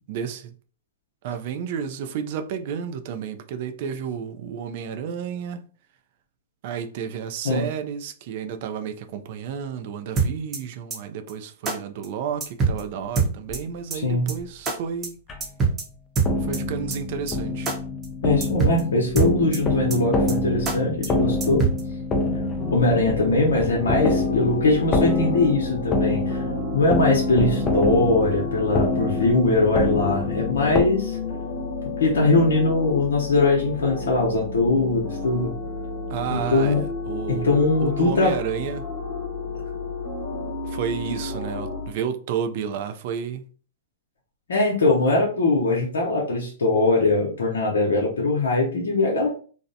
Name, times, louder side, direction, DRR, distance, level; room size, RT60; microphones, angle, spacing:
voice 1, 0.1-0.5 1.2-5.7 6.6-15.2 16.4-17.7 36.1-38.9 40.7-43.4, right 7 dB, 55° right, 0.4 m, -31 dB
sound 1, 10.2-10.6 10.9-11.0 11.3-11.4 11.6-11.8 12.0-12.1 12.4-12.8 13.1-13.6 13.9-14.0 14.3-14.4 14.6-14.7 15.0-15.1 15.4-15.8 16.1-16.6 16.9-17.0 17.3-17.4 17.6-17.8 18.0-18.1 18.4-18.8 19.1-19.6 19.9-20.0 20.3-20.4 20.6-20.8 21.0-21.1 21.4-21.8, right 4 dB, 20° right, 0.7 m, -23 dB
sound 2, 12.7-12.8 13.5-13.6 14.4-14.5 15.3-15.4 16.2-30.8, left 2 dB, 25° left, 0.4 m, -26 dB
voice 2, 18.2-21.7 22.7-26.4 26.7-31.2 31.8-35.5 36.3-36.8 37.3-38.3 44.5-49.3, left 2 dB, 80° left, 0.7 m, -21 dB
sound 3, 22.6-41.9, left 3 dB, 50° left, 0.8 m, -32 dB
2.6 x 2.0 x 2.6 m
hypercardioid pair, 125°, 0 cm